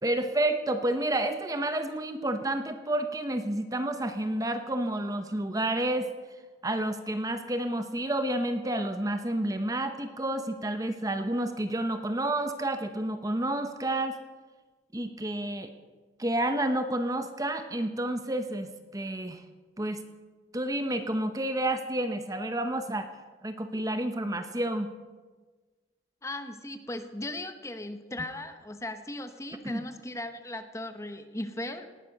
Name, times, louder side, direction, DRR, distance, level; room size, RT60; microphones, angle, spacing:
voice 1, 0.0-6.1 6.6-14.2 14.9-15.7 16.2-19.4 19.8-20.0 20.5-23.1 23.4-24.9 29.6-29.8, right 1 dB, 20° right, 8 dB, 0.8 m, -30 dB
voice 2, 26.2-31.9, left 1 dB, 15° left, 8 dB, 1.0 m, -37 dB
18.5 x 11.5 x 6.5 m, 1.3 s
head